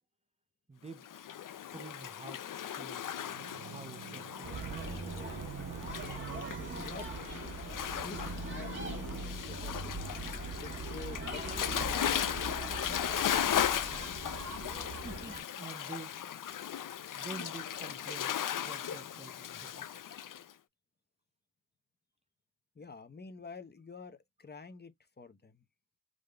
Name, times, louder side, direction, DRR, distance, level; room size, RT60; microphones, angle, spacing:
voice 1, 0.7-1.1 1.7-2.4 2.8-3.1 3.7-4.9 15.0-16.2 17.2-18.4 18.6-19.9, right 3 dB, 20° right, 0.5 m, -48 dB
Waves surf, 1.0-20.4, left 10 dB, 75° left, 0.5 m, -37 dB
sound 1, 2.9-9.3, right 9 dB, 75° right, 0.5 m, -46 dB
sound 2, 4.4-15.4, right 2 dB, 35° right, 1.9 m, -41 dB
voice 2, 6.8-7.1 8.0-9.9 10.6-13.1 22.8-25.6, left 4 dB, 30° left, 0.8 m, -49 dB
4.9 x 3.8 x 2.2 m
wide cardioid pair, 100°, 32 cm